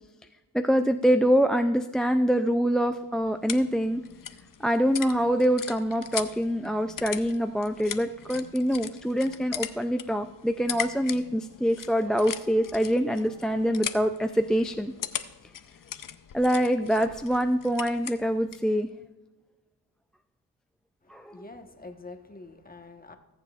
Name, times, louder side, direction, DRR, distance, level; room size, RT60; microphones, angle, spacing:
voice 1, 0.5-4.0 4.6-14.9 16.3-18.9 21.1-21.3, equal, ahead, 8 dB, 0.3 m, -25 dB
sound 1, 2.9-18.7, left 9 dB, 55° left, 0.7 m, -40 dB
voice 2, 21.0-23.2, left 3 dB, 20° left, 5 dB, 1.2 m, -46 dB
20.0 x 7.4 x 2.4 m, 1.1 s
cardioid pair, 70°, 39 cm